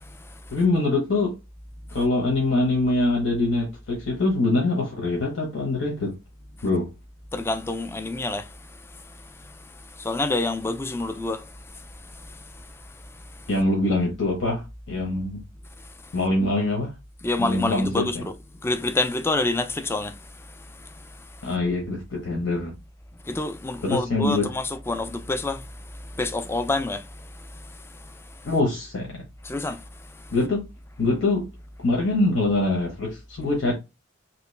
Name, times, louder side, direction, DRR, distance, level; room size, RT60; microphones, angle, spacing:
voice 1, 0.5-1.3 1.9-6.1 6.6-6.9 13.5-15.4 16.1-17.0 17.4-18.2 21.4-22.7 23.8-24.5 28.4-29.2 30.3-30.6 31.0-31.5 31.8-33.7, left 2 dB, 75° left, 1.0 m, -24 dB
voice 2, 7.3-8.4 10.0-11.4 17.2-18.3 18.6-20.1 23.3-25.6 26.2-27.0 29.5-29.8, left 2 dB, 15° left, 0.3 m, -27 dB
3.0 x 2.9 x 3.2 m
head